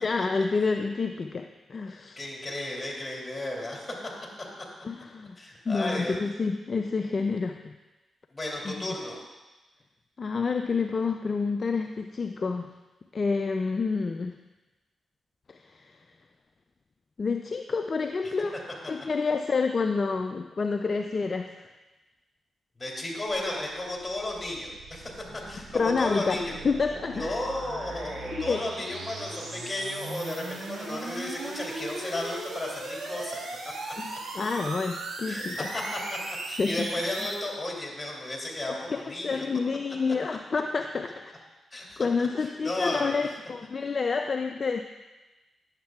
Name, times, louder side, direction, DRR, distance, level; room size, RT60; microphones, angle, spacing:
voice 1, 0.0-2.2 4.8-5.4 5.7-7.7 8.6-8.9 10.2-12.7 13.1-14.4 15.5-16.0 17.2-18.6 18.9-21.7 25.7-26.4 26.6-27.4 28.3-28.6 34.0-35.7 36.6-36.9 38.6-41.3 42.0-44.8, left 4 dB, 50° left, 6 dB, 0.4 m, -28 dB
voice 2, 2.2-3.9 5.4-6.1 8.3-9.2 22.8-26.6 27.1-33.4 33.8-33.9 35.3-36.2 36.5-39.5 41.7-43.3, left 1 dB, 25° left, -2 dB, 2.7 m, -34 dB
sound 1, 23.3-37.4, right 2 dB, 75° right, 1.4 m, -38 dB
10.5 x 7.3 x 2.4 m, 1.1 s
supercardioid pair, 45°, 0 cm